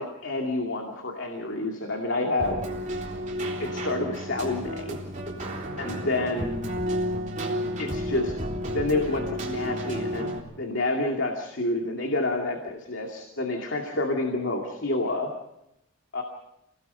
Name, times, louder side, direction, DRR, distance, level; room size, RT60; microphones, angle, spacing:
voice 1, 0.0-2.6 3.6-5.0 5.8-6.6 7.8-8.3 8.7-10.3 10.6-15.3 16.1-16.2, left 2 dB, 65° left, 2 dB, 2.4 m, -28 dB
Keyboard (musical), 2.4-10.4, equal, 40° right, 3.8 m, -31 dB
27.0 x 18.5 x 5.6 m, 0.84 s
head